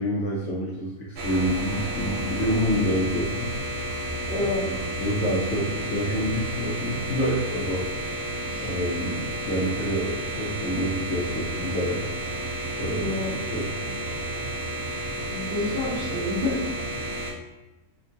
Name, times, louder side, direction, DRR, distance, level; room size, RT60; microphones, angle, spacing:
voice 1, 0.0-3.5 4.6-7.9 8.6-12.0 12.8-13.1 13.4-14.0, equal, 65° left, -5 dB, 0.8 m, -27 dB
sound 1, 1.2-17.3, right 1 dB, 75° right, 1.1 m, -31 dB
voice 2, 4.3-4.7 8.5-8.7 12.9-13.3 15.3-16.6, left 2 dB, 45° right, -7 dB, 1.0 m, -28 dB
2.9 x 2.3 x 2.6 m, 1.1 s
omnidirectional pair, 1.6 m